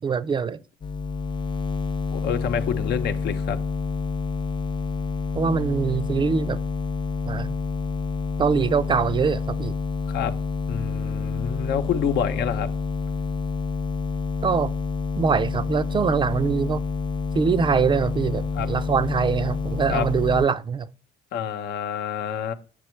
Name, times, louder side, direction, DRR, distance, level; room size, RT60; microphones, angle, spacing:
voice 1, 0.0-0.6 5.3-6.6 7.3-7.5 8.4-9.7 14.4-14.7 15.2-16.8 17.3-20.9, right 6 dB, 30° right, 0.4 m, -23 dB
sound 1, 0.8-20.5, left 5 dB, 25° left, 0.5 m, -28 dB
voice 2, 2.1-3.6 10.1-10.4 10.7-12.7 18.5-18.7 19.9-20.1 21.3-22.5, left 8 dB, 75° left, 0.9 m, -27 dB
8.3 x 6.2 x 3.2 m
cardioid pair, 110°, 17 cm